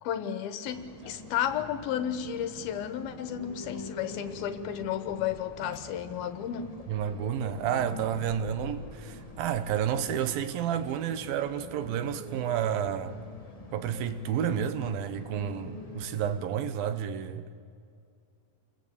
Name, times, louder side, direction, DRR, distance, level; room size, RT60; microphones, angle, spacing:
voice 1, 0.0-6.7, left 9 dB, 75° left, 2.9 m, -33 dB
sound 1, 0.6-16.4, left 2 dB, 40° left, 0.5 m, -45 dB
voice 2, 6.9-13.2 13.7-17.6, right 9 dB, 70° right, 3.0 m, -30 dB
29.5 x 22.5 x 8.8 m
omnidirectional pair, 4.5 m